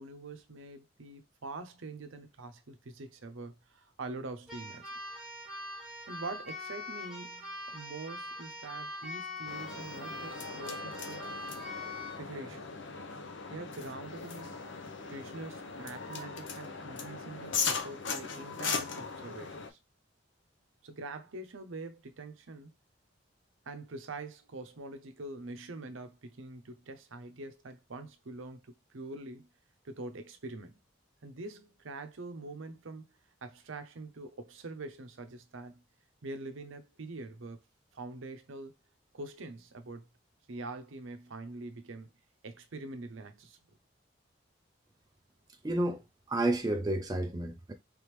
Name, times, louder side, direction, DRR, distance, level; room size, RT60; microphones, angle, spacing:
voice 1, 0.0-4.9 6.1-11.3 12.2-12.7 13.5-14.6 15.1-19.8 20.8-22.7 23.7-29.5 29.8-30.8 31.2-33.0 33.4-35.8 36.2-37.6 37.9-38.7 39.1-40.1 40.5-42.1 42.4-43.6, right 2 dB, 80° right, 0.7 m, -44 dB
Keyboard (musical), 4.5-12.2, left 1 dB, 5° right, 1.7 m, -42 dB
sound 1, 9.5-19.7, left 5 dB, 70° left, 0.7 m, -38 dB
voice 2, 45.6-47.7, right 1 dB, 20° right, 0.4 m, -31 dB
3.7 x 3.5 x 3.1 m
head